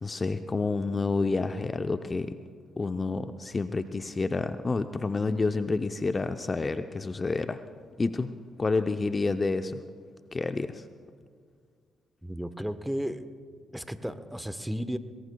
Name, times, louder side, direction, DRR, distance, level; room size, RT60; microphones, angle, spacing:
voice 1, 0.0-2.4 2.8-7.6 8.0-8.3 8.6-9.8 10.3-10.8, left 3 dB, 35° left, 9 dB, 0.7 m, -29 dB
voice 2, 12.2-13.2 13.7-15.0, equal, 5° right, 11 dB, 1.1 m, -33 dB
23.5 x 21.0 x 2.3 m, 2.1 s
hypercardioid pair, 45°, 0 cm